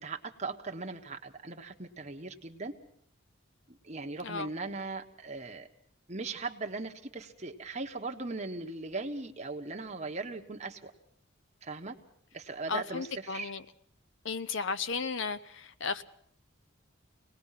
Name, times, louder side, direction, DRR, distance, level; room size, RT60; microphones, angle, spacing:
voice 1, 0.0-2.7 3.7-5.7 6.1-10.9 11.6-12.0 12.3-13.5, right 3 dB, 30° right, 1.3 m, -39 dB
voice 2, 12.7-13.6 14.2-16.0, left 5 dB, 60° left, 0.8 m, -34 dB
26.0 x 19.0 x 5.9 m
head